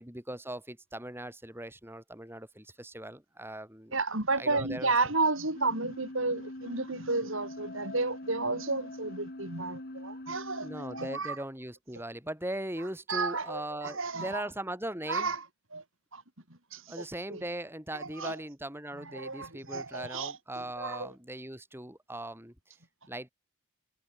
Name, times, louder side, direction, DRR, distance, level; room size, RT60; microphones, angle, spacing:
voice 1, 0.0-3.9 4.4-4.9 10.6-15.3 16.9-22.8 23.1-23.3, right 1 dB, 10° right, 5.9 m, -39 dB
voice 2, 3.9-11.4 13.1-14.4 15.1-15.4 15.7-15.8 16.1-16.2 16.7-17.4 17.9-18.4 19.0-21.1, right 3 dB, 60° right, 4.9 m, -32 dB
sound 1, 5.5-11.2, left 1 dB, 45° left, 1.9 m, -43 dB
head